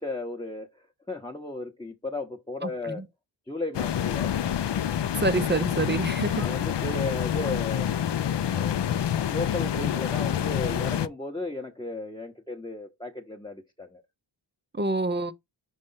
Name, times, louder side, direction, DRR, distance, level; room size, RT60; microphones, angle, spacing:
voice 1, 0.0-3.0 3.5-4.3 6.4-7.9 8.5-8.8 9.3-14.0, left 2 dB, 10° left, 0.8 m, -35 dB
voice 2, 2.6-3.1 5.2-6.4 14.8-15.3, right 3 dB, 25° right, 0.5 m, -27 dB
sound 1, 3.7-11.1, left 9 dB, 60° left, 0.5 m, -27 dB
5.3 x 3.2 x 5.5 m
wide cardioid pair, 50°, 48 cm